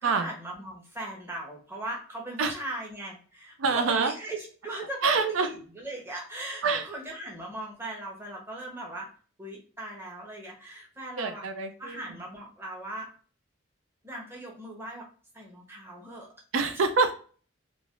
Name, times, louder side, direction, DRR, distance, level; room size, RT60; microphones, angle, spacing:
voice 1, 0.0-9.1 9.4-11.5 11.8-13.1 14.0-15.1 15.3-16.3, right 2 dB, 10° right, -2 dB, 0.9 m, -39 dB
voice 2, 3.6-4.1 5.0-5.5 6.6-6.8 11.2-12.1 16.5-17.1, right 4 dB, 85° right, 8 dB, 0.4 m, -26 dB
3.2 x 2.4 x 2.5 m, 0.40 s
head